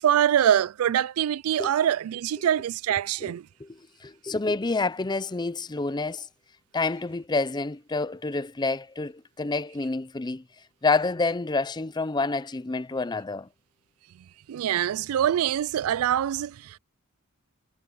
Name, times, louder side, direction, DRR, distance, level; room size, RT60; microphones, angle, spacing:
voice 1, 0.0-3.5 14.5-16.8, right 10 dB, 75° right, 0.3 m, -24 dB
voice 2, 3.7-6.3 6.7-10.4 10.8-13.5, left 3 dB, 20° left, 0.5 m, -28 dB
head